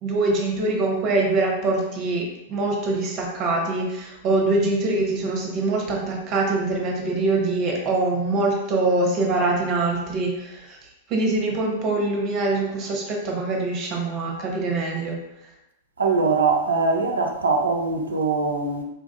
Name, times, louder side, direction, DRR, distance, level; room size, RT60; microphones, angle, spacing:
voice 1, 0.0-10.8 11.1-15.2, right 2 dB, 40° right, 0 dB, 0.9 m, -24 dB
voice 2, 16.0-18.8, right 4 dB, 75° right, 3 dB, 0.5 m, -22 dB
3.8 x 2.4 x 2.5 m, 0.89 s
figure-of-eight pair, 95°, 0 cm